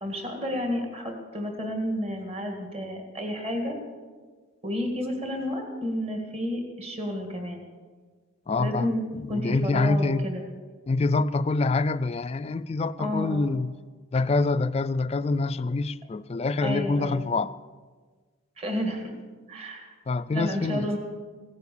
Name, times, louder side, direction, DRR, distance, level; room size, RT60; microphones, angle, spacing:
voice 1, 0.0-3.8 4.6-7.6 8.6-9.0 9.3-10.4 13.0-13.5 16.6-17.3 18.6-19.1 19.5-19.9 20.3-21.0, equal, 30° right, 2.0 m, -31 dB
voice 2, 8.5-8.9 9.3-10.2 10.9-13.7 14.1-17.5 20.1-20.9, left 3 dB, 30° left, 0.3 m, -26 dB
16.5 x 9.4 x 6.9 m
head